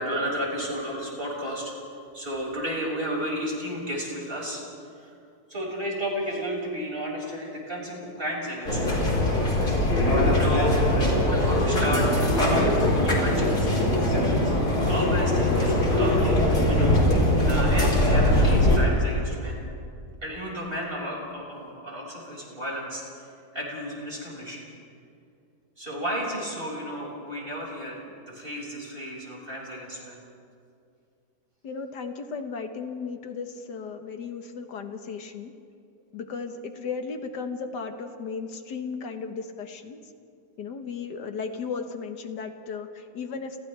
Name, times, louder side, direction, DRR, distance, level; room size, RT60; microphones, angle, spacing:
voice 1, 0.0-1.8 2.1-4.6 5.0-5.1 5.5-9.0 9.6-10.1 10.3-10.8 11.2-14.0 14.7-19.6 20.2-23.3 23.5-24.7 25.8-28.0 28.3-30.2, equal, 30° right, -3 dB, 6.1 m, -33 dB
sound 1, 8.7-18.8, left 1 dB, 65° left, 5.0 m, -21 dB
voice 2, 31.6-35.5 36.1-40.0 40.6-43.6, left 5 dB, 80° left, 6 dB, 1.9 m, -35 dB
30.0 x 29.0 x 3.4 m, 2.4 s
omnidirectional pair, 1.8 m